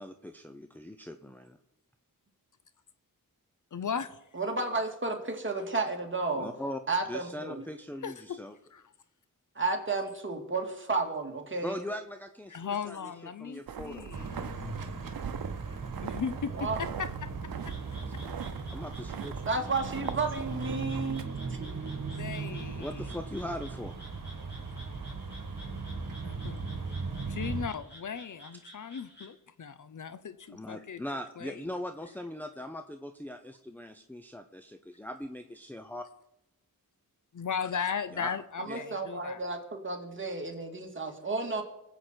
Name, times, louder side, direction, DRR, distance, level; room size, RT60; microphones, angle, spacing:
voice 1, 0.0-1.6 6.3-6.8 7.1-8.5 11.6-13.1 13.4-14.1 18.2-18.4 18.7-19.4 22.8-23.9 30.5-36.1 38.1-38.4 38.7-38.8, left 1 dB, 5° left, 0.7 m, -40 dB
voice 2, 3.7-4.2 8.0-8.4 8.7-8.8 12.5-14.4 15.7-17.7 22.1-23.0 26.2-26.6 27.2-31.0 31.4-31.7 37.3-39.4, left 6 dB, 60° left, 0.8 m, -37 dB
voice 3, 4.3-6.5 6.9-7.7 9.6-11.8 16.5-16.8 19.5-21.6 38.6-41.6, right 3 dB, 35° right, 2.2 m, -32 dB
sound 1, 13.7-21.2, right 8 dB, 85° right, 0.8 m, -42 dB
sound 2, 14.1-27.7, right 4 dB, 65° right, 1.7 m, -38 dB
Frog, 17.6-29.3, equal, 30° left, 4.1 m, -53 dB
20.5 x 7.9 x 4.5 m
wide cardioid pair, 75°, 35 cm